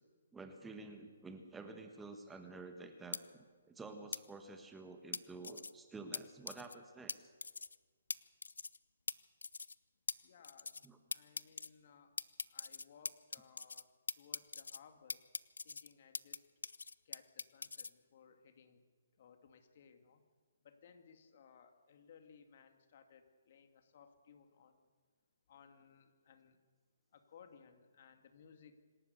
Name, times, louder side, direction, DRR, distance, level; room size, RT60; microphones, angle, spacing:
voice 1, 0.3-7.3 10.8-11.0, right 3 dB, 10° right, 6 dB, 1.4 m, -50 dB
sound 1, 3.1-3.2 4.1-4.2 5.1-5.7 6.1-6.2 6.5-6.7 7.1-7.2 7.4-7.7 8.1-8.2 8.4-8.8 9.1-9.2 9.4-9.7 10.1-10.2 10.4-10.9 11.1-11.7 12.2-13.8 14.1-14.8 15.1-16.4 16.6-17.9, left 4 dB, 85° left, 0.7 m, -42 dB
voice 2, 10.2-12.1 12.5-13.9 14.2-15.2 15.6-16.5 17.0-18.8 19.2-20.2 20.6-24.9 25.5-26.6 27.1-28.8, left 6 dB, 50° left, 7 dB, 2.4 m, -62 dB
26.5 x 12.5 x 8.1 m, 1.5 s
hypercardioid pair, 150°, 0 cm